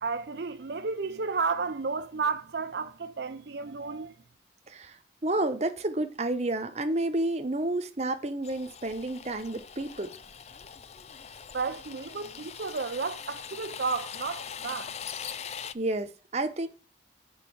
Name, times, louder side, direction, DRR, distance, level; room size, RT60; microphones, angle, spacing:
voice 1, 0.0-4.1 11.5-14.9, right 4 dB, 65° right, 0.6 m, -32 dB
voice 2, 4.7-10.1 15.4-16.7, right 2 dB, 35° right, 1.0 m, -30 dB
sound 1, 8.4-15.7, left 7 dB, 35° left, 0.4 m, -42 dB
7.3 x 5.4 x 6.2 m
head